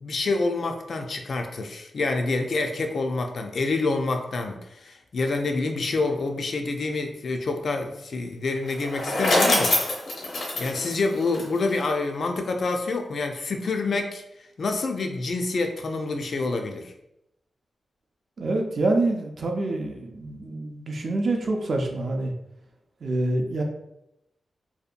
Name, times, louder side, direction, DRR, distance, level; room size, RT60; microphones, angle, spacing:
voice 1, 0.0-9.8 10.6-14.2 14.6-16.9, left 3 dB, 55° left, 4 dB, 0.3 m, -27 dB
Bicycle, 8.6-11.8, left 2 dB, 85° left, 0.7 m, -25 dB
voice 2, 18.4-22.3 23.0-23.6, right 2 dB, 50° right, 2 dB, 0.4 m, -26 dB
2.7 x 2.1 x 2.4 m, 0.83 s
wide cardioid pair, 115°, 0 cm